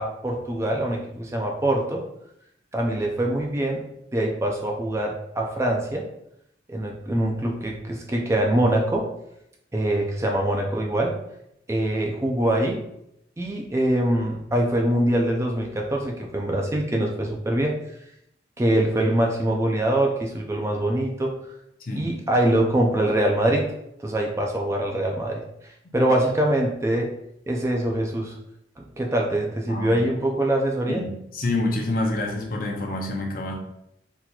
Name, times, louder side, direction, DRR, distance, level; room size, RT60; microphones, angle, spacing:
voice 1, 0.0-2.0 2.7-3.8 4.1-6.1 6.7-9.1 9.7-11.2 11.7-12.8 13.4-17.8 18.6-21.3 21.9-23.7 24.0-25.4 25.9-27.1 27.5-28.3 28.8-31.1, right 1 dB, 15° right, 0 dB, 0.3 m, -23 dB
voice 2, 29.7-30.0 30.9-33.5, left 2 dB, 50° left, 1 dB, 0.6 m, -27 dB
4.0 x 2.8 x 2.3 m, 0.79 s
head